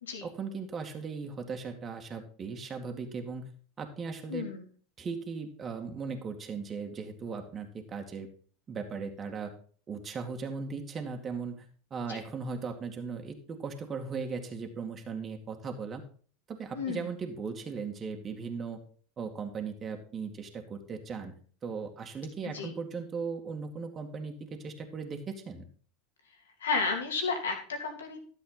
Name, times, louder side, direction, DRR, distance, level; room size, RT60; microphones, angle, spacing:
voice 1, 0.2-3.5 3.8-4.5 5.0-8.3 8.7-9.5 9.9-11.7 11.9-16.0 16.5-18.8 19.2-21.3 21.6-25.6, right 5 dB, 30° right, 3 dB, 2.1 m, -38 dB
voice 2, 4.3-4.6 12.1-12.2 16.7-17.1 22.4-22.8 26.6-28.2, left 4 dB, 75° left, 4 dB, 2.7 m, -32 dB
12.5 x 7.8 x 4.1 m, 0.44 s
hypercardioid pair, 85°, 0 cm